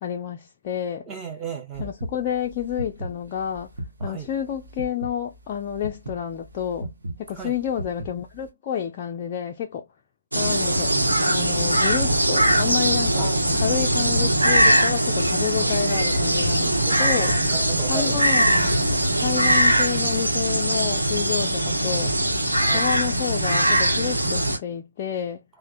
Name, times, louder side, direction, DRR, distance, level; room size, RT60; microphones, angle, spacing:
voice 1, 0.0-1.1 1.8-3.7 4.0-6.9 7.3-9.8 10.3-10.9 11.2-13.3 13.6-17.3 17.9-18.7 19.2-22.2 22.7-25.4, left 9 dB, 25° left, 0.3 m, -29 dB
voice 2, 1.1-1.9 4.0-4.3 7.3-7.5 13.1-13.8 15.6-15.7 16.9-18.2 22.6-22.9, right 6 dB, 15° right, 0.6 m, -35 dB
sound 1, 1.7-8.5, right 1 dB, 55° right, 0.9 m, -36 dB
sound 2, 10.3-24.6, right 1 dB, 80° right, 0.9 m, -21 dB
3.2 x 2.0 x 2.4 m
figure-of-eight pair, 140°, 0 cm